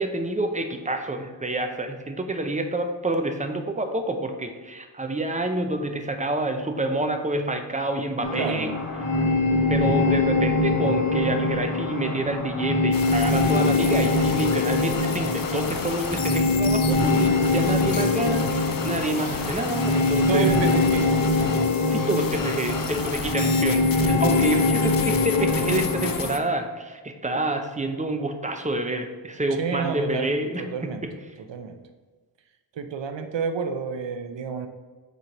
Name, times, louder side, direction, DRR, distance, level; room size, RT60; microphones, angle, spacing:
voice 1, 0.0-8.7 9.4-20.6 21.9-31.1, right 2 dB, 15° right, 6 dB, 0.5 m, -28 dB
sound 1, 8.2-26.1, left 2 dB, 65° left, 1.5 m, -23 dB
voice 2, 8.3-8.7 9.1-9.4 20.3-21.1 29.6-31.0 31.5-31.8 32.8-34.7, right 6 dB, 70° right, 7 dB, 0.7 m, -29 dB
sound 2, 12.9-26.4, left 6 dB, 50° left, 0.6 m, -33 dB
4.7 x 4.2 x 5.1 m, 1.4 s
wide cardioid pair, 90°, 46 cm